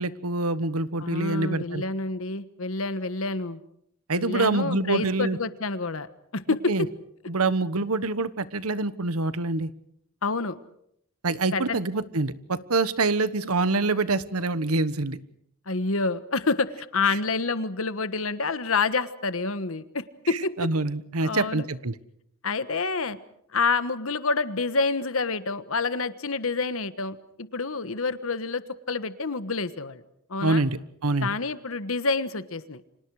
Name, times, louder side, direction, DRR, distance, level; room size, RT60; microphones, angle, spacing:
voice 1, 0.0-1.8 4.1-5.4 6.7-6.9 7.3-9.7 11.2-15.2 17.1-17.2 20.6-22.0 30.4-31.3, right 3 dB, 90° right, 14 dB, 1.3 m, -26 dB
voice 2, 1.0-3.6 4.2-6.9 10.2-10.6 11.5-11.8 15.7-20.5 21.2-21.7 22.4-23.2 23.5-30.0 30.3-30.6 31.2-32.8, left 4 dB, 65° left, 12 dB, 1.3 m, -28 dB
30.0 x 26.0 x 4.9 m, 0.73 s
head